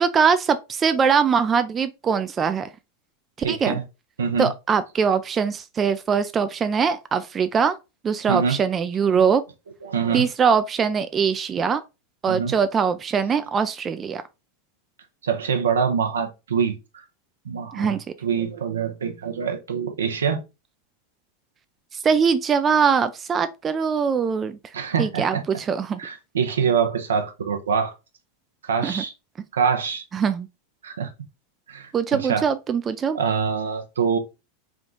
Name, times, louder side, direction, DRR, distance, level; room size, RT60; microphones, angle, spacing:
voice 1, 0.0-2.7 3.5-3.8 4.4-7.8 8.0-9.4 10.1-11.8 12.2-14.2 17.7-18.0 21.9-24.6 25.0-26.0 28.8-29.0 30.1-30.5 31.9-33.2, right 6 dB, 25° right, 0.3 m, -22 dB
voice 2, 3.4-3.8 4.2-4.5 8.3-8.6 9.1-9.3 9.8-10.2 12.3-12.5 15.2-17.0 17.4-20.4 24.7-25.4 26.0-27.9 28.6-29.1 29.5-30.1 30.8-31.1 31.7-32.5 33.1-34.2, right 6 dB, 80° right, 0.7 m, -25 dB
3.6 x 2.3 x 3.7 m
hypercardioid pair, 95°, 0 cm